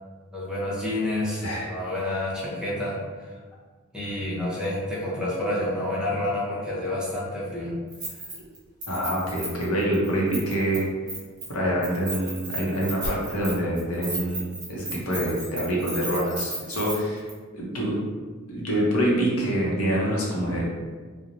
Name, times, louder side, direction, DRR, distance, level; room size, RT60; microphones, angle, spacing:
voice 1, 0.3-3.3 3.9-7.7, left 1 dB, 5° right, -7 dB, 0.6 m, -29 dB
Keys jangling, 7.9-8.6 8.8-10.8 11.1-11.5 11.8-16.9 17.3-17.4, right 2 dB, 40° right, 1.1 m, -34 dB
voice 2, 8.9-10.8 11.5-17.2 17.5-18.0 18.5-20.6, equal, 70° left, -4 dB, 0.7 m, -26 dB
3.0 x 2.1 x 2.5 m, 1.5 s
head